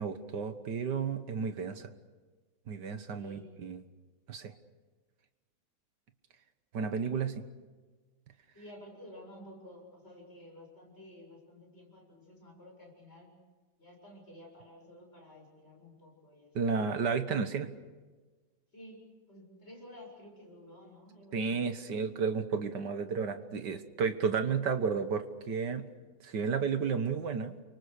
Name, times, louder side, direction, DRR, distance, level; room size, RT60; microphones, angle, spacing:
voice 1, 0.0-1.9 2.7-3.8 4.3-4.5 6.7-7.4 16.6-17.7 21.3-25.8 26.2-27.6, right 5 dB, 60° right, 9 dB, 1.9 m, -32 dB
voice 2, 3.2-3.5 8.5-13.3 13.8-16.5 18.7-21.6, left 1 dB, 30° left, 0 dB, 7.4 m, -52 dB
30.0 x 24.5 x 6.6 m, 1.3 s
omnidirectional pair, 2.1 m